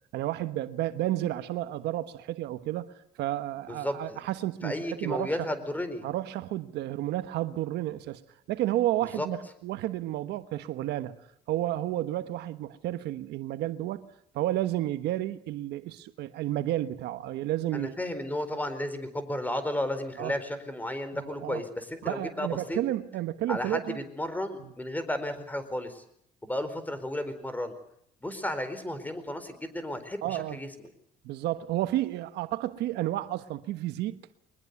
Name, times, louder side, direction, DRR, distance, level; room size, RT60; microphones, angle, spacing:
voice 1, 0.1-5.5 6.0-8.2 8.5-11.2 11.5-14.1 14.3-17.9 20.2-20.3 21.2-21.6 22.0-24.0 24.6-24.7 30.2-30.6 31.2-34.2, right 14 dB, 80° right, 1.3 m, -31 dB
voice 2, 3.7-4.2 4.6-6.0 9.2-9.3 17.7-22.8 23.5-26.0 26.4-27.7 28.2-30.7, left 1 dB, 10° left, 4.4 m, -33 dB
23.0 x 21.0 x 8.3 m
cardioid pair, 110°, 17 cm